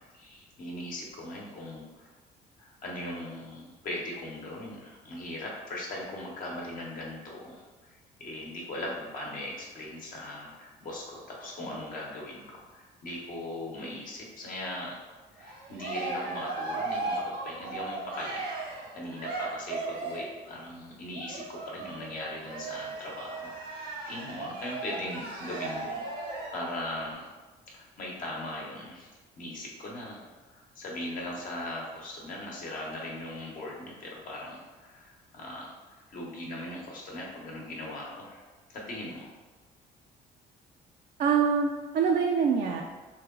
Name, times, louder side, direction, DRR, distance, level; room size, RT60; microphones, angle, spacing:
voice 1, 0.0-2.1 2.6-7.6 8.2-15.0 15.3-18.5 18.9-27.3 27.7-39.3, left 1 dB, 55° left, -3 dB, 1.0 m, -39 dB
Cheering, 15.4-20.4 21.1-26.7, right 3 dB, 75° right, 0.9 m, -36 dB
voice 2, 41.2-42.8, right 6 dB, 55° right, 1 dB, 0.4 m, -25 dB
3.1 x 2.8 x 3.7 m, 1.3 s
cardioid pair, 110°, 17 cm